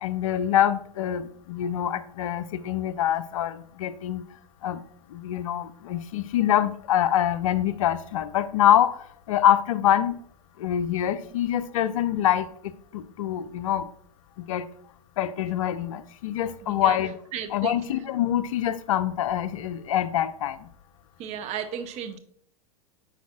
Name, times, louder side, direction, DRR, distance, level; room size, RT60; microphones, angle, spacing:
voice 1, 0.0-4.2 4.6-4.8 5.1-10.2 10.6-13.9 14.4-14.6 15.2-17.2 17.5-20.6, left 11 dB, 60° left, 0.5 m, -25 dB
voice 2, 17.3-17.8 21.2-22.2, right 8 dB, 35° right, 0.7 m, -34 dB
9.1 x 4.9 x 2.4 m
figure-of-eight pair, 95°, 19 cm